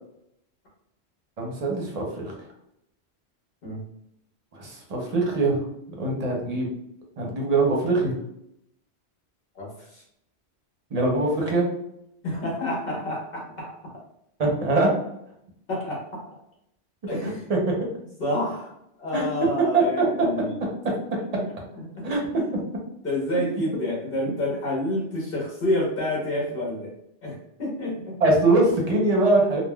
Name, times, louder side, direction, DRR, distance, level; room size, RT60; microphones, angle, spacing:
voice 1, 1.4-2.3 4.5-5.6 6.0-6.7 7.2-8.1 10.9-11.7 14.4-14.9 17.2-17.3 17.7-17.8 19.1-19.2 19.7-20.1 20.6-20.9 22.0-22.4 23.3-23.4 28.2-29.6, right 2 dB, 40° right, -1 dB, 0.7 m, -22 dB
voice 2, 9.5-10.0 12.2-13.7 15.7-16.2 17.1-17.4 18.2-18.7 19.0-20.5 21.3-21.5 21.7-22.4 23.0-26.9 27.2-28.2, left 1 dB, 60° left, -4 dB, 1.2 m, -29 dB
3.5 x 2.1 x 2.2 m, 0.77 s
omnidirectional pair, 1.1 m